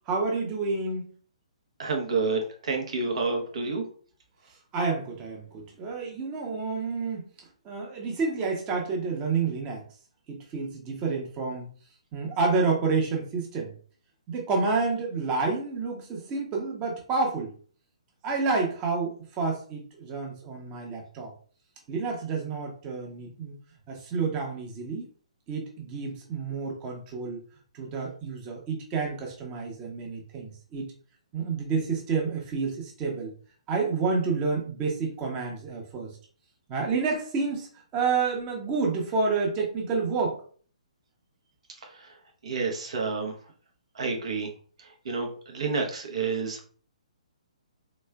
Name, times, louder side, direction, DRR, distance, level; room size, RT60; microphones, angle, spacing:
voice 1, 0.1-1.1 4.7-7.3 7.6-9.8 10.3-11.7 12.1-13.7 14.3-17.5 18.2-21.3 21.9-23.5 23.9-25.1 25.5-27.4 27.7-30.9 31.3-33.3 33.7-36.1 36.7-37.7 37.9-40.4, right 4 dB, 25° right, 0 dB, 0.8 m, -29 dB
voice 2, 1.8-3.9 42.0-42.1 42.4-43.3 43.9-44.5 45.0-46.7, right 4 dB, 60° right, 2 dB, 0.9 m, -29 dB
3.5 x 3.1 x 2.2 m, 0.43 s
figure-of-eight pair, 130°, 4 cm